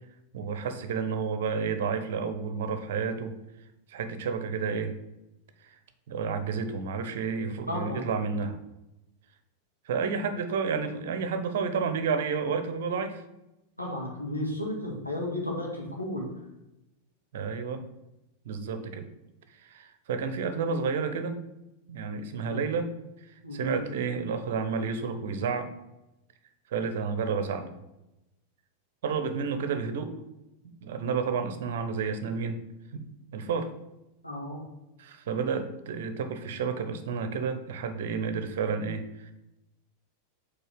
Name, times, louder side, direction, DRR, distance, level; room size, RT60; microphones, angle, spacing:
voice 1, 0.3-3.3 3.9-4.9 5.6-5.7 6.1-8.6 9.9-13.2 17.3-17.8 18.5-19.1 19.6-21.4 21.9-22.9 23.5-25.7 26.7-27.7 29.0-30.2 30.8-32.6 32.9-33.7 35.0-39.3, right 5 dB, 55° right, 8 dB, 0.7 m, -31 dB
voice 2, 7.7-8.0 13.8-16.3 22.5-22.7 23.4-23.8 34.2-34.6, left 1 dB, 85° left, -1 dB, 1.6 m, -33 dB
5.5 x 4.0 x 5.7 m, 0.94 s
figure-of-eight pair, 90°, 0 cm